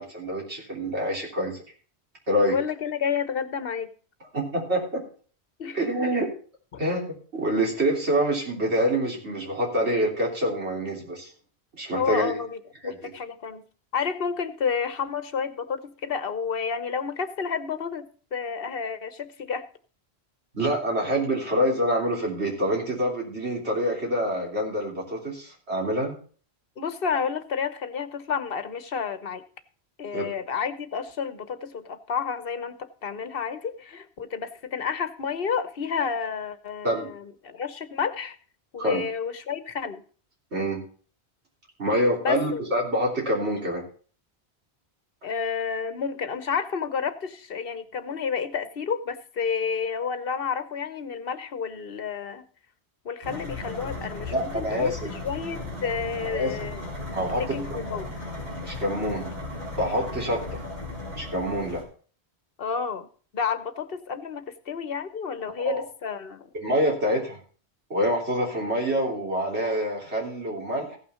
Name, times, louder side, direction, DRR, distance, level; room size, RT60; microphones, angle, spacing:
voice 1, 0.0-1.6 2.3-2.6 4.3-5.0 5.7-6.3 6.8-7.1 7.3-11.3 11.8-12.4 12.8-13.1 20.5-26.2 30.1-30.2 36.8-37.1 38.8-39.0 40.5-40.8 41.8-43.8 54.3-55.1 56.2-56.5 57.1-57.4 57.7-58.1 58.6-59.3 59.8-60.6 61.1-61.8 65.6-65.9 66.5-67.4 67.9-71.0, equal, 85° right, -1 dB, 3.6 m, -26 dB
voice 2, 2.5-3.9 5.6-5.8 11.9-12.6 12.8-13.6 13.9-19.6 26.8-29.4 30.0-32.8 33.0-38.4 38.7-40.0 42.2-42.6 45.2-52.4 53.0-54.9 55.2-56.9 57.3-58.1 62.6-63.1 63.3-66.5, left 6 dB, 60° left, 12 dB, 1.1 m, -30 dB
sound 1, 53.2-61.8, left 2 dB, 40° right, 4.0 m, -36 dB
15.5 x 6.0 x 5.6 m, 0.42 s
omnidirectional pair, 1.1 m